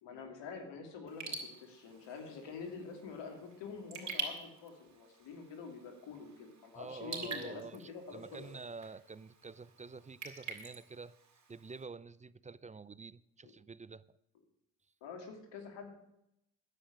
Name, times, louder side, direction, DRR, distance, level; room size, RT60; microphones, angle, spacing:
voice 1, 0.0-8.6 13.4-13.5 15.0-15.9, left 5 dB, 75° left, 2.9 m, -47 dB
Raindrop / Drip, 1.1-11.8, right 4 dB, 40° right, 3.3 m, -47 dB
voice 2, 6.7-11.2 11.5-14.2, right 4 dB, 15° right, 0.5 m, -48 dB
9.9 x 7.9 x 9.7 m
hypercardioid pair, 55°, 43 cm